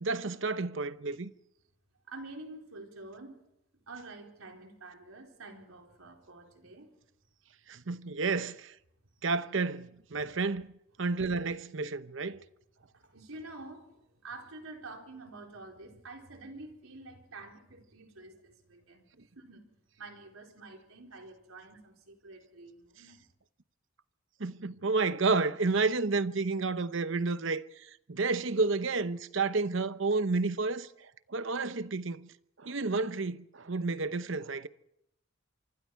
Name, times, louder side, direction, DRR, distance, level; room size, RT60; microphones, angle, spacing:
voice 1, 0.0-1.3 7.7-8.7 9.2-10.7 11.0-12.4 24.4-30.9 31.3-32.3 32.6-34.7, right 3 dB, 60° right, 0.9 m, -31 dB
voice 2, 2.1-3.4 3.9-6.9 12.2-12.4 12.9-19.0 19.4-19.6 20.0-23.3, right 2 dB, 85° right, 4.0 m, -48 dB
25.5 x 24.5 x 4.7 m
head